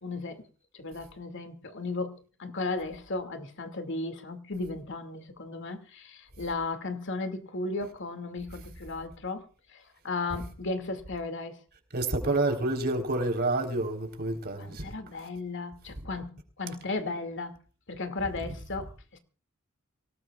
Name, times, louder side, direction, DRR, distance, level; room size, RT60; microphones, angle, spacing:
voice 1, 0.0-0.4 0.7-11.6 14.6-17.6 17.9-19.2, left 3 dB, 60° left, 2.3 m, -35 dB
voice 2, 11.9-14.8, right 2 dB, 50° right, 4.1 m, -28 dB
25.0 x 18.5 x 2.4 m
head